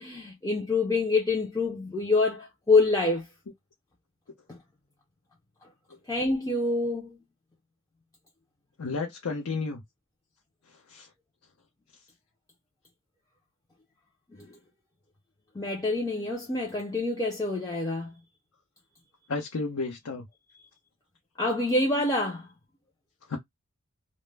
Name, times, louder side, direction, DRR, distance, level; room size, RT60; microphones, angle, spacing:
voice 1, 0.0-3.3 4.5-4.6 6.1-7.2 14.4-14.6 15.6-18.1 21.4-22.5, left 3 dB, 15° left, 0.4 m, -26 dB
voice 2, 8.8-9.8 10.9-11.1 19.3-20.3 23.3-23.4, left 3 dB, 80° left, 0.6 m, -32 dB
2.1 x 2.0 x 3.1 m
head